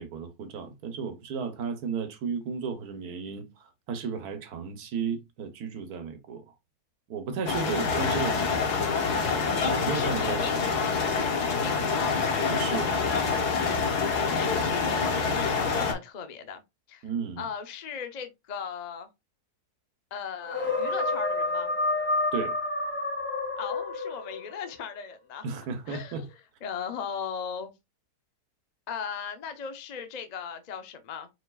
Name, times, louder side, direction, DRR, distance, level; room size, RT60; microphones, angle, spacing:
voice 1, 0.0-6.5 7.1-8.9 9.7-10.7 12.5-12.9 15.5-15.8 17.0-17.5 22.3-22.6 25.4-26.3, right 5 dB, 75° right, 1.4 m, -34 dB
sound 1, 7.5-15.9, left 5 dB, 85° left, 1.6 m, -26 dB
voice 2, 8.8-9.4 9.9-12.2 14.2-16.6 16.9-17.1 17.4-19.1 20.1-21.7 23.6-25.4 25.9-26.3 26.6-27.7 28.9-31.3, left 7 dB, 60° left, 0.4 m, -37 dB
sound 2, 20.4-24.5, left 2 dB, 10° left, 1.2 m, -29 dB
4.6 x 4.5 x 2.3 m
omnidirectional pair, 1.6 m